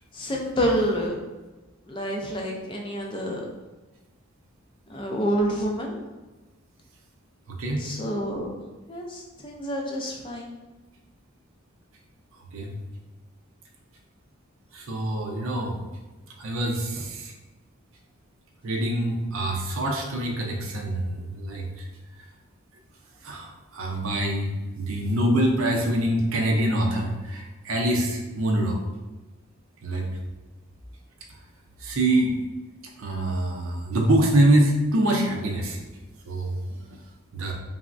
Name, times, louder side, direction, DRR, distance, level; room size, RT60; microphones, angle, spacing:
voice 1, 0.1-1.2 1.9-3.4 4.9-6.0 7.8-8.5 8.9-10.5, equal, 25° left, 0 dB, 0.3 m, -28 dB
voice 2, 7.5-7.9 12.5-12.7 14.7-15.7 16.4-17.3 18.6-21.9 23.2-24.5 24.8-28.8 29.8-30.1 31.8-32.3 33.0-35.8 36.3-36.8 37.3-37.5, right 1 dB, 75° right, 1 dB, 0.5 m, -25 dB
3.3 x 2.0 x 2.5 m, 1.2 s
head